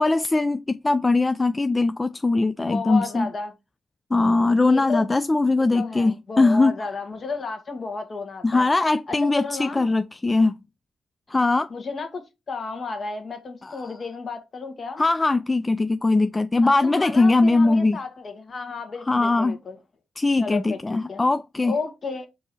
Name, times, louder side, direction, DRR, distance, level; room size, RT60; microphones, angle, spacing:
voice 1, 0.0-3.3 4.1-6.7 8.4-10.5 11.3-11.7 13.6-13.8 15.0-18.0 19.1-19.5 20.2-21.7, left 3 dB, 25° left, 0.3 m, -21 dB
voice 2, 2.6-3.5 4.7-5.1 5.6-8.7 9.1-9.9 11.7-12.2 12.5-15.0 16.6-19.8 20.4-21.2 21.6-22.3, left 4 dB, 50° left, 1.3 m, -32 dB
4.6 x 2.7 x 4.2 m
hypercardioid pair, 45°, 0 cm